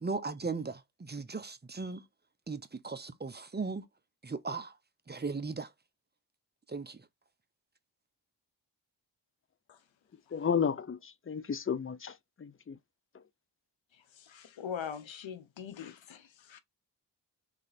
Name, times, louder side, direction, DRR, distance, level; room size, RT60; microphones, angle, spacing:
voice 1, 0.0-2.0 2.5-3.8 4.2-4.7 5.1-5.7 6.7-7.0, right 4 dB, 25° right, 0.6 m, -37 dB
voice 2, 10.3-12.8, left 7 dB, 30° left, 0.5 m, -33 dB
voice 3, 13.9-16.6, left 8 dB, 90° left, 0.7 m, -43 dB
3.3 x 2.8 x 4.0 m
cardioid pair, 55°, 45 cm